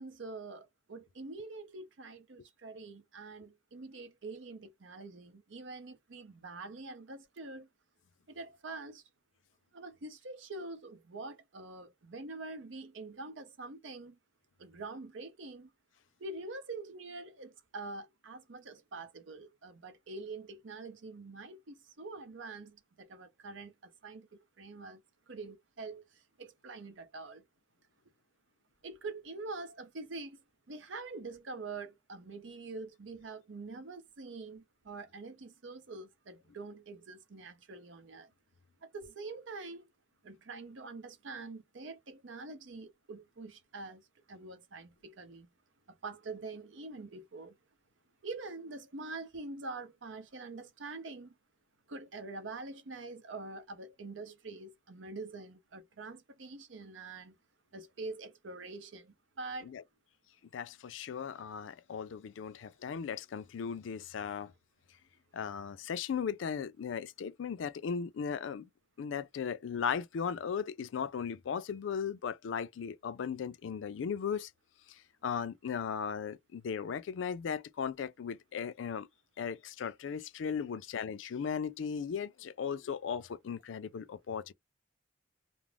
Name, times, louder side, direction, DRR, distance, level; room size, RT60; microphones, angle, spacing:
voice 1, 0.0-7.7 8.3-9.0 9.7-14.2 14.6-15.7 16.2-25.0 25.3-27.4 28.8-38.3 38.8-39.9 40.2-45.5 45.9-47.6 48.2-51.3 51.9-57.4 57.7-59.7, right 3 dB, 85° right, 0.7 m, -45 dB
voice 2, 60.5-64.5 65.3-68.7 69.0-74.5 74.9-79.1 79.4-84.5, left 7 dB, 90° left, 0.4 m, -37 dB
2.4 x 2.0 x 3.2 m
head